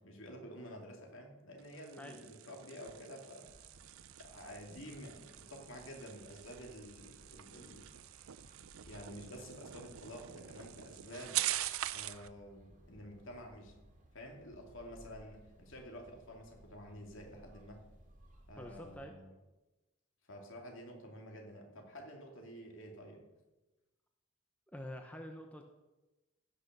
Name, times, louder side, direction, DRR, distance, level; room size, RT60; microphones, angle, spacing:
voice 1, 0.0-3.5 4.2-7.9 8.8-11.5 11.9-13.7 14.1-17.8 18.5-19.3 20.3-23.2, equal, 65° left, 2 dB, 2.6 m, -50 dB
sound 1, 1.6-12.3, right 14 dB, 80° right, 0.5 m, -43 dB
sound 2, 3.4-19.1, right 1 dB, 35° right, 2.2 m, -61 dB
voice 2, 18.6-19.1 24.7-25.6, left 1 dB, 5° left, 3 dB, 0.8 m, -46 dB
16.0 x 6.4 x 6.7 m, 1.1 s
head